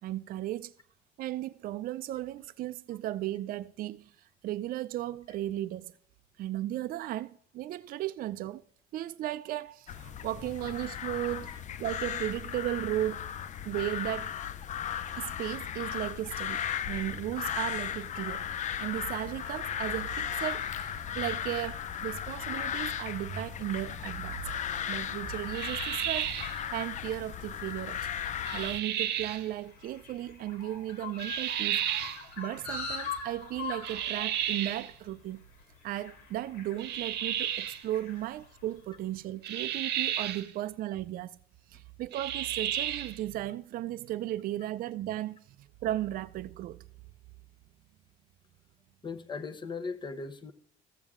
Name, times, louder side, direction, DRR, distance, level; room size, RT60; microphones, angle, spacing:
voice 1, 0.0-0.7 1.2-5.9 6.4-8.6 8.9-11.5 11.8-13.3 13.7-14.3 15.2-18.5 18.8-24.4 24.9-26.3 26.7-28.1 28.5-35.4 35.8-41.4 41.7-46.9, right 14 dB, 60° right, 0.4 m, -35 dB
sound 1, 9.9-28.8, left 9 dB, 45° left, 0.5 m, -36 dB
sound 2, 25.5-26.6 28.4-29.4 31.2-32.2 33.8-34.9 36.8-37.8 39.4-40.5 42.1-43.2, right 11 dB, 80° right, 0.8 m, -32 dB
sound 3, 28.9-39.1, left 5 dB, 80° left, 3.5 m, -43 dB
voice 2, 49.0-50.5, left 4 dB, 25° left, 0.9 m, -39 dB
14.0 x 7.2 x 3.6 m
cardioid pair, 110°, 17 cm